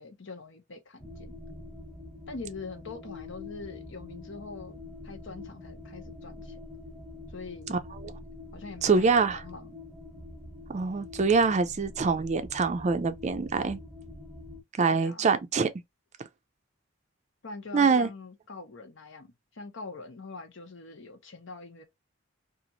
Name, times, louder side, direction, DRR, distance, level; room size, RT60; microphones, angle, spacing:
voice 1, 0.0-1.3 2.3-6.5 7.3-7.8 8.5-9.7 14.9-15.3 17.4-21.8, left 3 dB, 70° left, 0.8 m, -43 dB
sound 1, 1.0-14.6, left 2 dB, 5° left, 1.0 m, -45 dB
voice 2, 7.7-8.1 8.8-9.4 10.7-13.8 14.8-15.7 17.7-18.1, right 4 dB, 35° right, 0.4 m, -25 dB
2.9 x 2.4 x 2.6 m
head